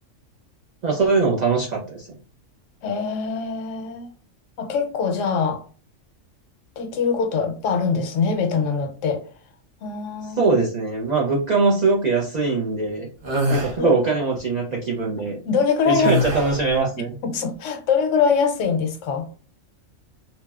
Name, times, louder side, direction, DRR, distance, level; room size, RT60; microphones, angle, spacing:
voice 1, 0.8-2.1 10.4-13.1 13.5-15.4 15.9-17.1, right 4 dB, 70° right, 0.4 m, -21 dB
voice 2, 2.8-4.1 4.6-5.6 6.8-9.2 9.8-10.5 13.8-13.9 15.2-16.2 17.0-19.3, left 5 dB, 75° left, 0.9 m, -23 dB
sound 1, 13.2-13.8 16.0-16.7, left 1 dB, 50° right, 0.9 m, -23 dB
2.8 x 2.0 x 2.2 m
omnidirectional pair, 1.3 m